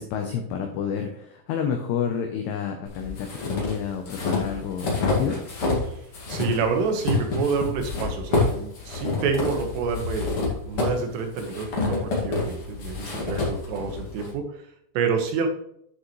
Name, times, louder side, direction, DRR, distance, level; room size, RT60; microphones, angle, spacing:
voice 1, 0.0-5.4, left 7 dB, 85° left, 4 dB, 2.3 m, -29 dB
sound 1, 2.9-5.9 6.1-14.3, left 3 dB, 50° left, 1.7 m, -28 dB
voice 2, 6.3-10.3 10.7-14.4 15.0-15.5, right 5 dB, 80° right, 4 dB, 3.7 m, -28 dB
9.7 x 6.6 x 3.1 m, 0.72 s
omnidirectional pair, 5.7 m